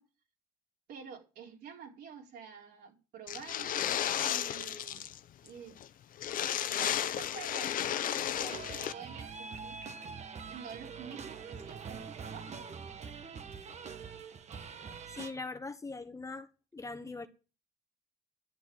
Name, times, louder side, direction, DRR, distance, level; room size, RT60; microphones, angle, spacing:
voice 1, 0.9-3.9 4.2-5.1 5.4-5.8 6.7-9.8 10.5-12.7, right 6 dB, 70° right, 4.5 m, -48 dB
sound 1, 3.3-5.2 5.5-5.6 5.8-5.9 6.2-8.9, left 11 dB, 55° left, 0.8 m, -33 dB
sound 2, 8.4-15.3, right 5 dB, 40° right, 1.5 m, -44 dB
voice 2, 15.1-16.5 16.7-17.3, left 3 dB, 20° left, 1.2 m, -41 dB
11.5 x 7.2 x 8.8 m
cardioid pair, 110°, 17 cm